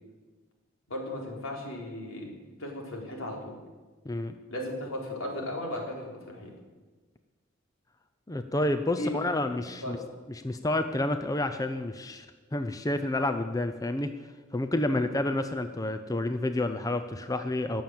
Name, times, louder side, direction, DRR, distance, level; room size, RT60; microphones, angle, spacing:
voice 1, 0.9-2.3 2.6-3.6 4.5-6.5 9.0-9.5 9.8-10.0 14.9-15.1, left 1 dB, 80° left, -1 dB, 3.9 m, -36 dB
voice 2, 4.1-4.4 8.3-10.0 10.3-12.3 12.5-14.1 14.5-17.8, left 1 dB, 15° left, 8 dB, 0.6 m, -29 dB
20.0 x 7.2 x 7.8 m, 1.3 s
head